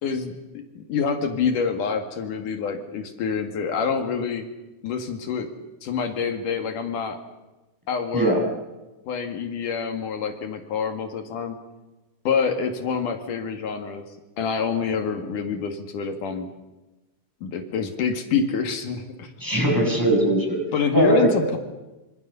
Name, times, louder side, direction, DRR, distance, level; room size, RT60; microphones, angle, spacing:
voice 1, 0.0-4.5 4.8-5.5 5.8-7.2 7.9-8.3 9.1-11.6 12.3-14.0 14.4-16.5 17.4-19.3 20.7-21.6, left 6 dB, 80° left, 6 dB, 3.6 m, -26 dB
voice 2, 8.1-8.5 19.4-20.6 20.9-21.5, right 1 dB, 5° right, 0 dB, 7.6 m, -20 dB
27.0 x 26.0 x 6.9 m, 1.1 s
omnidirectional pair, 3.6 m